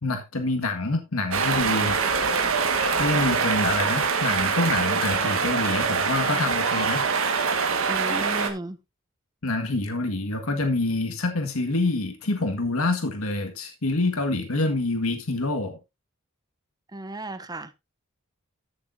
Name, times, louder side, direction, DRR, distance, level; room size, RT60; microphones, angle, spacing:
voice 1, 0.0-2.0 3.0-7.1 9.4-15.8, left 2 dB, 75° left, 1.7 m, -26 dB
sound 1, 1.3-8.5, right 5 dB, 65° right, 1.5 m, -24 dB
voice 2, 7.9-8.8 16.9-17.7, right 1 dB, 20° right, 0.8 m, -34 dB
14.5 x 6.7 x 2.6 m
head